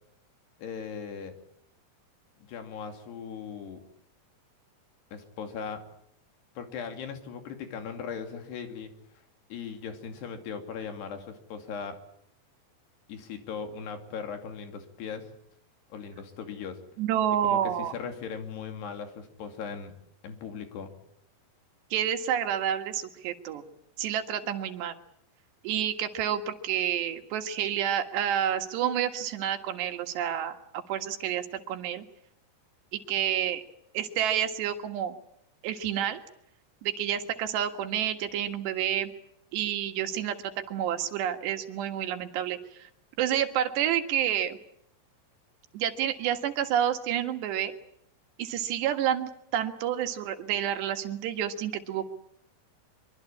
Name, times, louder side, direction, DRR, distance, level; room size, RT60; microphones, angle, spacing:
voice 1, 0.6-1.3 2.5-3.8 5.1-5.8 6.6-8.9 9.5-12.0 13.1-15.3 15.9-16.8 17.4-19.9 20.2-20.9, left 6 dB, 75° left, 6 dB, 4.7 m, -38 dB
voice 2, 17.0-17.9 21.9-23.6 24.0-25.0 25.6-30.6 30.9-32.1 32.9-33.6 33.9-35.2 35.6-36.2 36.8-39.1 39.5-42.9 43.2-44.6 45.7-47.7 48.4-52.1, right 10 dB, 85° right, 7 dB, 3.9 m, -29 dB
24.0 x 24.0 x 8.7 m, 0.74 s
omnidirectional pair, 4.8 m